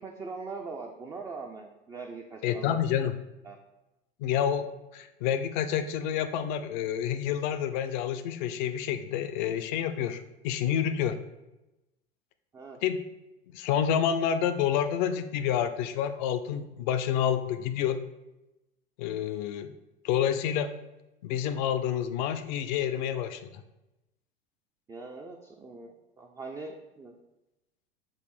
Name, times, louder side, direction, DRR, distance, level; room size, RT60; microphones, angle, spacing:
voice 1, 0.0-2.8 3.4-3.6 12.5-12.8 24.9-27.1, right 4 dB, 10° right, 2 dB, 0.3 m, -41 dB
voice 2, 2.4-3.2 4.2-11.2 12.8-13.0 13.5-18.0 19.0-19.7 20.0-20.7 21.2-23.6, left 9 dB, 55° left, 10 dB, 0.5 m, -28 dB
6.2 x 2.5 x 3.3 m, 0.97 s
figure-of-eight pair, 80°, 29 cm